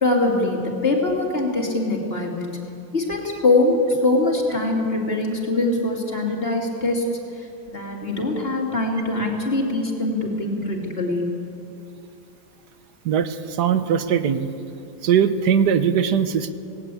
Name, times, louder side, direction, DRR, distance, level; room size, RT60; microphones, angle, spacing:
voice 1, 0.0-2.6 2.9-7.0 7.4-11.4, left 2 dB, 35° left, 0 dB, 3.1 m, -23 dB
voice 2, 13.0-14.5 15.0-16.5, right 8 dB, 90° right, 10 dB, 1.6 m, -20 dB
18.5 x 18.0 x 8.5 m, 2.6 s
omnidirectional pair, 1.7 m